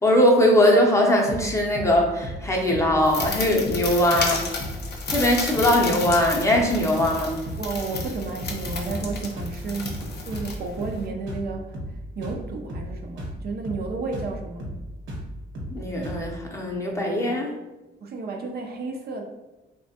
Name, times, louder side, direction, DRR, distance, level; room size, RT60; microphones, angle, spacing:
voice 1, 0.0-4.5 5.1-7.3 15.7-17.5, left 1 dB, 15° left, -1 dB, 0.6 m, -20 dB
sound 1, 1.3-1.5 1.7-2.0 2.2-2.4 2.7-2.9 3.2-3.4 3.6-3.9 4.1-4.3 4.6-4.8 5.1-5.3 5.6-5.8 6.0-6.2 6.5-6.7 7.0-7.2 7.5-7.7 7.9-8.1 8.4-9.1 9.4-9.6 9.8-10.1 10.3-10.5 10.8-11.0 11.3-11.5 11.7-12.0 12.2-12.4 12.7-12.9 13.2-13.4 13.6-13.9 14.1-14.3 14.6-14.8 15.1-15.3 15.5-15.8 16.0-16.2, equal, 70° right, 1.0 m, -34 dB
sound 2, 3.0-11.1, left 4 dB, 55° left, 0.6 m, -32 dB
voice 2, 7.6-14.7 18.0-19.2, right 4 dB, 50° right, 3 dB, 0.5 m, -32 dB
3.0 x 2.2 x 2.8 m, 1.0 s
cardioid pair, 90°, 20 cm